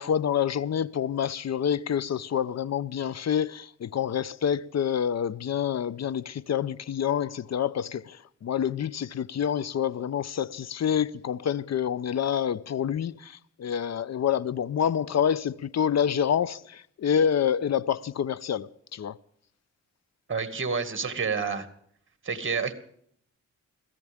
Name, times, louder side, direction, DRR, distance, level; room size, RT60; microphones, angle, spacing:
voice 1, 0.0-19.2, left 8 dB, 60° left, 0.7 m, -27 dB
voice 2, 20.3-21.7 22.2-22.7, right 5 dB, 40° right, 2.1 m, -29 dB
22.5 x 15.0 x 3.6 m
cardioid pair, 75°, 30 cm